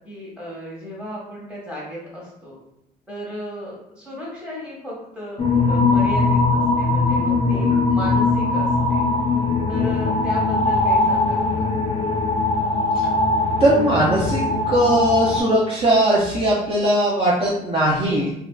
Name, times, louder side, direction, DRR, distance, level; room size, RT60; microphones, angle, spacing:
voice 1, 0.0-2.6 3.1-9.1 9.7-11.6, left 1 dB, 5° right, -6 dB, 1.0 m, -35 dB
sound 1, 5.4-15.4, left 3 dB, 35° left, 0.4 m, -20 dB
voice 2, 13.6-18.3, right 1 dB, 35° right, -6 dB, 0.5 m, -19 dB
2.6 x 2.1 x 2.2 m, 0.80 s
cardioid pair, 110°, 17 cm